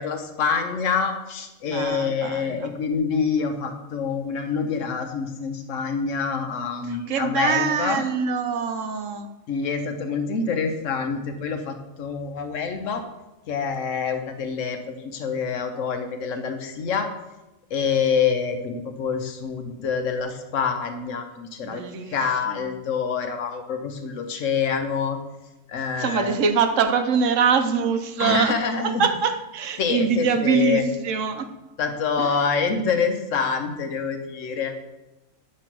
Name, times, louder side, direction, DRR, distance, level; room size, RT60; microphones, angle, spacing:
voice 1, 0.0-8.0 9.5-13.0 13.5-17.1 17.7-21.8 22.1-25.2 25.7-26.3 28.2-29.0 29.8-30.9 31.8-34.7, left 5 dB, 70° left, 6 dB, 1.1 m, -26 dB
voice 2, 1.6-2.7 6.9-9.3 21.6-22.2 22.5-22.6 26.0-28.6 28.8-31.5 32.2-32.3, right 6 dB, 70° right, 8 dB, 1.0 m, -24 dB
8.3 x 3.2 x 5.9 m, 0.98 s
omnidirectional pair, 1.4 m